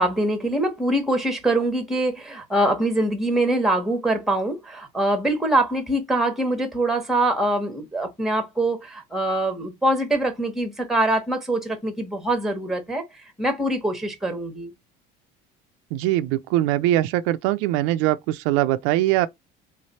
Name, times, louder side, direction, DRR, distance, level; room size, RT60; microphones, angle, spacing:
voice 1, 0.0-14.7, right 1 dB, ahead, 1.2 m, -24 dB
voice 2, 15.9-19.3, right 15 dB, 80° right, 0.5 m, -22 dB
3.9 x 3.2 x 4.2 m
cardioid pair, 160°, 21 cm